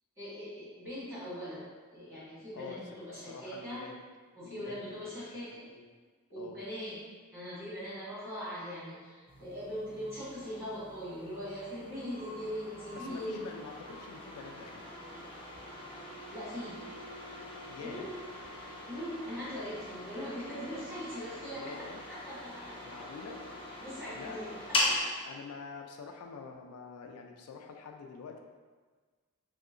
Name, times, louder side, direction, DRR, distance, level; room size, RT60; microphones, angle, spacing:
voice 1, 0.2-1.6 1.9-3.8 4.4-5.7 6.3-7.0 7.3-13.5 16.3-16.8 17.7-18.1 18.9-22.7 23.8-25.2, equal, 10° right, -11 dB, 1.3 m, -41 dB
voice 2, 2.5-4.0 4.3-5.1 5.7-5.9 6.4-6.6 12.9-14.9 17.7-18.1 21.6-22.0 22.8-23.5 24.1-24.5 25.2-28.4, left 5 dB, 80° left, 3 dB, 0.3 m, -46 dB
sound 1, 9.3-25.0, left 1 dB, 25° left, 0.6 m, -41 dB
3.1 x 2.8 x 2.5 m, 1.4 s
head